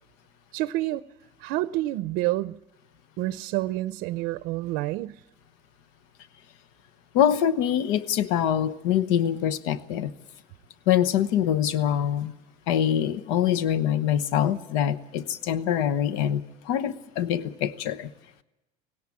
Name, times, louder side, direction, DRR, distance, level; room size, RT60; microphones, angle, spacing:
voice 1, 0.5-1.0 1.4-2.6 3.2-5.2, right 17 dB, 65° right, 0.6 m, -28 dB
voice 2, 7.1-10.1 10.9-12.3 12.7-18.1, left 10 dB, 80° left, 1.0 m, -24 dB
18.5 x 17.0 x 8.5 m
cardioid pair, 160°, 16 cm